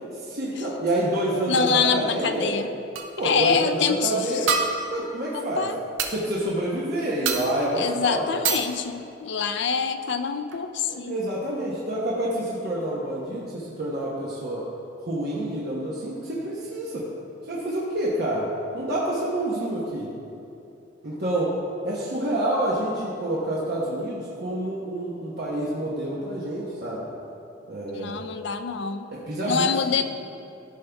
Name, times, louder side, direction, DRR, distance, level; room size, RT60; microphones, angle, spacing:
voice 1, 0.2-2.6 3.2-4.6 4.9-5.7 6.1-8.4 10.9-14.6 15.0-17.1 17.5-18.5 18.7-20.1 21.0-21.5 21.8-27.1 27.7-28.2 29.1-30.0, right 1 dB, 50° right, -6 dB, 1.1 m, -28 dB
voice 2, 1.5-2.7 3.2-4.5 5.3-5.8 7.7-11.2 27.9-29.1 29.5-30.0, left 6 dB, 60° left, 9 dB, 0.5 m, -25 dB
sound 1, 3.0-3.2 4.5-5.1 6.0-6.2 7.3-7.7 8.4-8.8 10.1-10.2 10.5-10.6, right 5 dB, 75° right, 0.8 m, -26 dB
13.5 x 5.4 x 3.5 m, 2.7 s
head